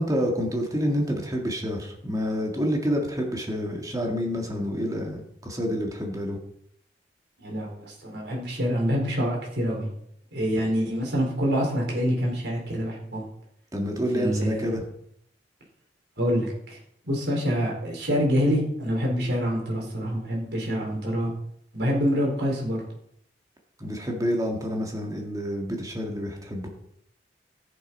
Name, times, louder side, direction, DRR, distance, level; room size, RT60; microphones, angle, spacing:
voice 1, 0.0-6.4 10.6-10.7 13.7-14.8 23.8-26.7, equal, 20° right, 1 dB, 1.9 m, -28 dB
voice 2, 7.4-9.9 10.3-13.3 14.1-14.7 16.2-16.8 17.0-21.3 21.7-22.8, equal, 70° right, -1 dB, 4.4 m, -26 dB
14.0 x 7.6 x 5.4 m, 0.73 s
head